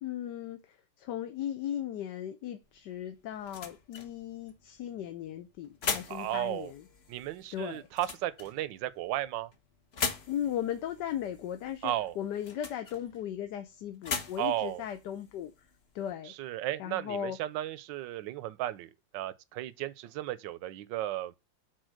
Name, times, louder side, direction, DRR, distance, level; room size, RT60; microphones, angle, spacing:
voice 1, 0.0-6.8 7.5-7.9 10.3-15.5 15.9-16.3 16.8-17.4, left 10 dB, 70° left, 1.3 m, -37 dB
sound 1, 2.6-16.1, left 5 dB, 40° left, 1.0 m, -41 dB
voice 2, 6.1-6.7 7.1-9.5 11.8-12.2 14.4-14.8 16.4-21.3, right 13 dB, 75° right, 1.3 m, -34 dB
6.3 x 4.3 x 6.4 m
omnidirectional pair, 2.0 m